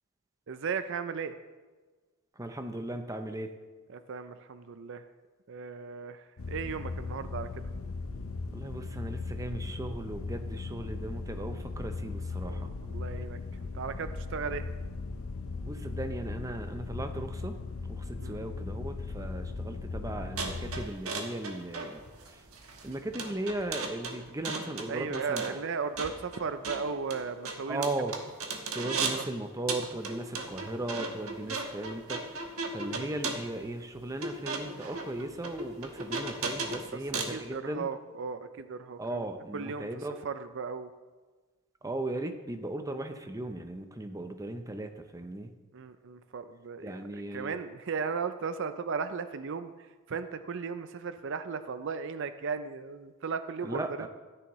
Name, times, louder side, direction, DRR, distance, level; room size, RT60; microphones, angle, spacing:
voice 1, 0.5-1.3 3.9-5.0 5.5-7.7 12.4-14.7 18.2-18.4 24.6-27.9 28.9-29.3 31.4-31.6 32.9-33.4 36.9-39.3 39.5-39.9 40.2-40.9 45.7-47.0 47.3-49.7 50.1-54.1, right 5 dB, 55° right, 11 dB, 0.5 m, -36 dB
voice 2, 2.4-3.5 8.5-12.7 15.7-17.6 17.9-22.0 22.3-22.4 22.8-25.6 27.7-28.1 28.7-32.4 32.7-37.9 39.0-40.1 41.8-45.5 46.8-47.6 53.6-54.1, right 1 dB, 15° right, 7 dB, 0.6 m, -37 dB
sound 1, 6.4-20.9, left 3 dB, 70° left, 0.8 m, -38 dB
sound 2, 20.4-29.3 29.7-37.4, right 3 dB, 75° right, 1.3 m, -37 dB
14.0 x 9.8 x 3.1 m, 1.3 s
head